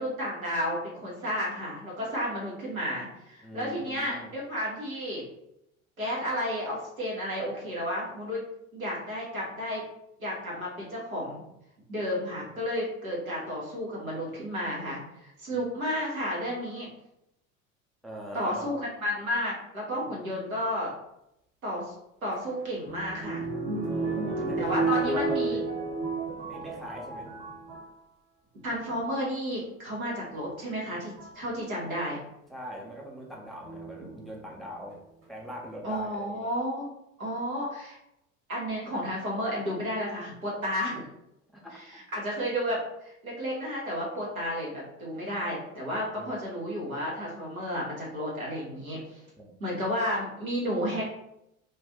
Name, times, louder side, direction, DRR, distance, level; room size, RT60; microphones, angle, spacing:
voice 1, 0.0-5.2 6.0-8.4 8.7-9.8 10.2-11.4 11.9-16.9 18.3-20.9 21.6-21.9 22.2-23.5 23.9-24.1 24.6-25.6 28.6-32.2 34.0-34.1 35.8-36.9 37.2-38.0 38.5-41.0 41.7-49.2 49.6-51.0, equal, 80° right, -5 dB, 1.2 m, -32 dB
voice 2, 3.4-4.3 15.5-15.6 18.0-18.7 23.8-25.6 26.5-27.3 32.5-35.0 35.3-36.5 41.5-42.0 46.1-46.4 49.4-49.5, equal, ahead, -2 dB, 0.6 m, -42 dB
sound 1, 22.3-28.0 28.7-29.1 30.4-30.5 31.2-31.5 33.6-34.2 34.9-35.0 35.2-35.3, right 3 dB, 45° right, 1.2 m, -32 dB
2.5 x 2.4 x 3.6 m, 0.83 s
figure-of-eight pair, 70°, 41 cm